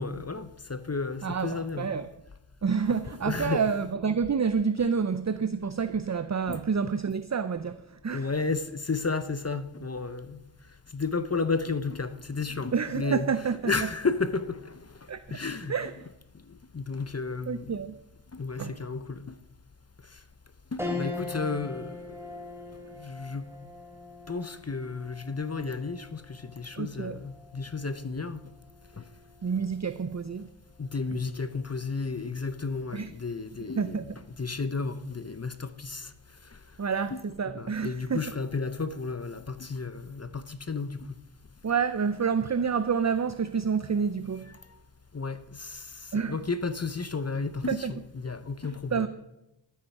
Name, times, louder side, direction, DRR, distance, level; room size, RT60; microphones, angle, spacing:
voice 1, 0.0-1.9 3.2-3.6 6.5-6.6 8.1-10.4 10.9-13.3 13.6-14.9 15.3-15.7 16.7-17.8 18.3-19.3 20.7-22.1 23.0-23.5 24.3-28.4 30.8-34.0 34.4-36.1 37.1-37.2 37.5-41.0 45.1-49.1, left 4 dB, 30° left, 0.7 m, -32 dB
voice 2, 1.2-2.1 2.6-8.3 12.7-13.9 15.1-15.4 15.7-15.9 17.5-18.0 18.6-18.7 26.8-27.2 29.4-30.5 31.1-31.2 32.9-33.1 33.8-34.1 36.8-38.2 41.6-44.5 46.1-46.4 47.7-47.9 48.9-49.1, right 6 dB, 35° right, 0.5 m, -28 dB
sound 1, 20.8-30.4 30.9-31.0 32.3-32.7, left 2 dB, 5° right, 2.4 m, -41 dB
12.0 x 9.4 x 5.8 m
wide cardioid pair, 60°, 48 cm